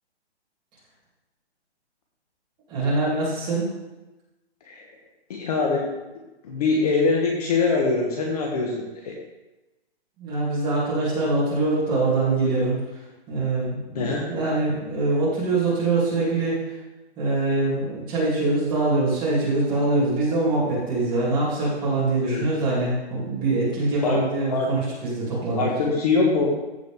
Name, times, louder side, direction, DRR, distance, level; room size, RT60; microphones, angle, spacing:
voice 1, 2.7-3.7 10.2-12.8 13.3-16.6 17.2-25.9, right 2 dB, 15° right, -9 dB, 3.0 m, -24 dB
voice 2, 5.3-5.9 6.4-9.1 13.9-14.3 22.2-22.4 24.0-24.2 24.5-24.8 25.6-26.6, left 4 dB, 35° left, -1 dB, 1.2 m, -23 dB
14.5 x 5.0 x 3.6 m, 1.0 s
hypercardioid pair, 170°, 33 cm